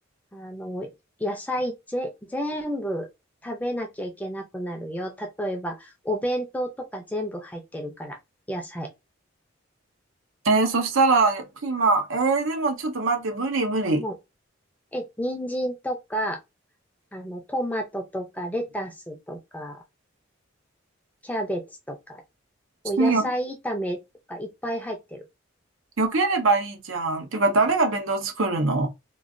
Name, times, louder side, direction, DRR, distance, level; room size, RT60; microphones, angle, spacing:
voice 1, 0.3-0.9 1.2-3.1 3.4-8.2 8.5-8.9 14.0-14.1 14.9-16.4 17.1-19.8 21.2-22.2 22.8-24.0 24.3-25.2, equal, 10° left, 0.5 m, -31 dB
voice 2, 10.4-14.0 23.0-23.3 26.0-28.9, right 3 dB, 80° right, 0.7 m, -22 dB
3.0 x 2.3 x 2.6 m
head